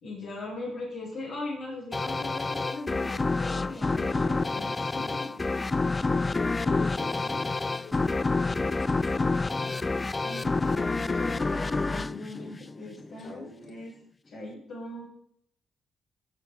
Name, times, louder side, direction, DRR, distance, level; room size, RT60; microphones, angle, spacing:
voice 1, 0.0-5.3 5.7-5.8 10.2-13.9 14.3-15.1, left 2 dB, 75° left, -4 dB, 4.3 m, -39 dB
sound 1, 1.9-13.1, left 3 dB, 25° left, 0.4 m, -28 dB
voice 2, 4.9-5.4 6.2-9.7 13.2-13.5, left 4 dB, 55° left, -2 dB, 5.2 m, -44 dB
14.5 x 7.8 x 4.4 m, 0.69 s
cardioid pair, 90°, 0 cm